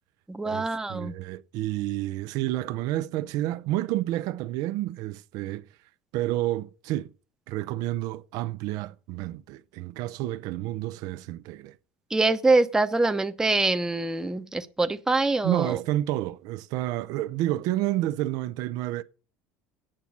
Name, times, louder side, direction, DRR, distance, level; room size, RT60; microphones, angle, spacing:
voice 1, 0.3-1.1 12.1-15.7, right 3 dB, 10° right, 0.8 m, -24 dB
voice 2, 0.9-5.6 6.1-7.1 7.5-11.8 15.4-19.0, right 15 dB, 65° right, 0.6 m, -30 dB
8.8 x 5.9 x 8.0 m
supercardioid pair, 125°, 7 cm